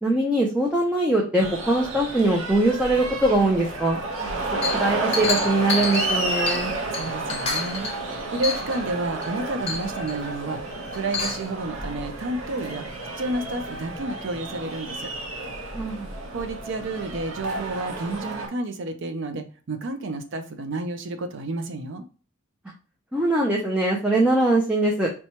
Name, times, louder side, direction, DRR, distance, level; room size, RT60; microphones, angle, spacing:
voice 1, 0.0-4.0 4.7-6.7 15.7-16.1 23.1-25.1, right 2 dB, 5° right, -2 dB, 0.5 m, -22 dB
sound 1, 1.4-18.5, right 2 dB, 90° right, 0.8 m, -31 dB
Chink clink, 4.6-6.7 6.9-8.0 8.4-8.8 9.2-9.3 9.7-10.2 10.9-11.5, left 4 dB, 30° left, 0.7 m, -29 dB
voice 2, 6.9-12.9 13.2-15.1 16.3-22.0, right 2 dB, 65° right, 8 dB, 0.5 m, -31 dB
4.2 x 2.3 x 2.8 m, 0.36 s
head